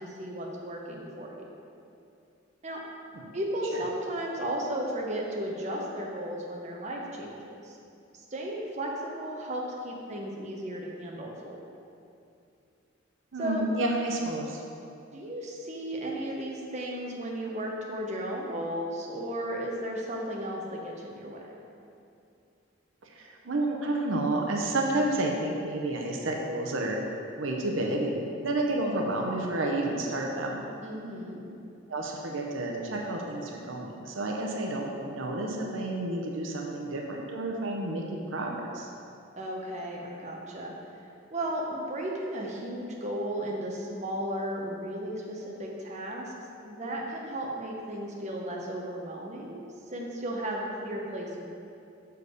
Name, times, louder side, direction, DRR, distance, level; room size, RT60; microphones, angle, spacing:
voice 1, 0.0-1.4 2.6-2.8 3.3-7.8 8.1-11.6 13.4-13.6 15.1-21.4 30.8-31.4 39.4-40.7 41.3-46.3 46.6-51.5, right 1 dB, 35° right, -2 dB, 0.8 m, -35 dB
voice 2, 13.3-14.6 23.1-27.0 27.4-30.6 31.9-38.9, right 2 dB, 70° right, 0 dB, 0.7 m, -30 dB
6.5 x 4.6 x 4.8 m, 2.6 s
head